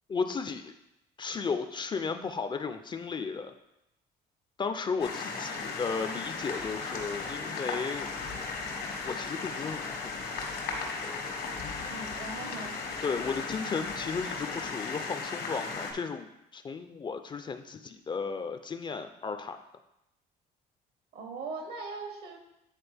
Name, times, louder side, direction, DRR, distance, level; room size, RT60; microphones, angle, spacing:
voice 1, 0.1-0.7 1.2-3.5 4.6-8.1 9.0-10.1 13.0-19.6, left 5 dB, 30° left, 8 dB, 0.4 m, -34 dB
sound 1, 5.0-15.9, left 4 dB, 80° left, 1.6 m, -36 dB
voice 2, 11.9-12.8 21.1-22.4, right 3 dB, 70° right, 3 dB, 1.3 m, -40 dB
9.0 x 3.8 x 3.4 m, 0.87 s
cardioid pair, 110°, 17 cm